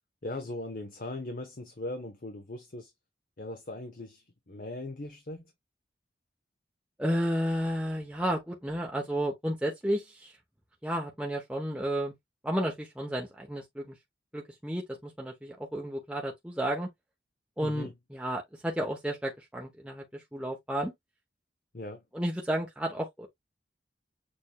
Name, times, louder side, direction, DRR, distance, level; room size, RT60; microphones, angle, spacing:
voice 1, 0.2-2.9 3.4-5.4 17.6-17.9 21.7-22.0, left 2 dB, 50° left, 0.9 m, -39 dB
voice 2, 7.0-10.3 10.8-12.1 12.4-14.0 14.3-16.9 17.6-20.9 22.1-23.3, equal, 5° right, 0.9 m, -32 dB
6.6 x 3.3 x 2.2 m
head